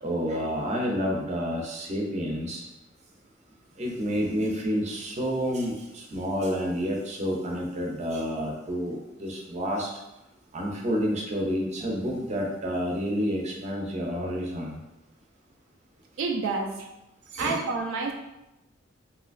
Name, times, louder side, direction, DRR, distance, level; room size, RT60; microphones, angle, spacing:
voice 1, 0.0-2.6 3.8-9.9 10.5-14.8 17.3-17.6, equal, 35° right, -1 dB, 0.5 m, -29 dB
voice 2, 16.2-16.9 17.4-18.1, right 4 dB, 85° right, 3 dB, 0.3 m, -28 dB
3.1 x 2.7 x 2.5 m, 0.94 s
head